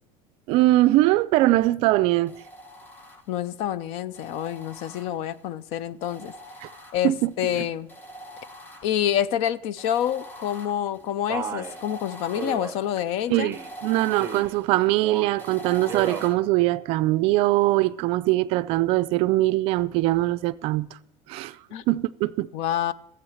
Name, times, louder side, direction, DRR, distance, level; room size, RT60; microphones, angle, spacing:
voice 1, 0.5-2.4 6.6-6.7 7.0-7.5 13.3-13.6 13.8-20.9 21.3-21.6 21.9-22.5, right 17 dB, 50° right, 0.4 m, -22 dB
sound 1, 2.3-3.5 4.1-5.5 6.0-7.4 7.9-9.2 9.8-16.3, equal, 15° left, 0.9 m, -44 dB
voice 2, 3.3-6.3 6.9-7.9 8.8-13.5 21.7-21.8 22.5-22.9, left 10 dB, 55° left, 0.5 m, -27 dB
Male speech man speaking, 11.3-11.8 12.4-12.8 13.3-13.7 14.1-14.6 15.0-15.4 15.8-16.3, right 7 dB, 20° right, 0.7 m, -33 dB
14.0 x 7.9 x 7.1 m
cardioid pair, 180°, 13 cm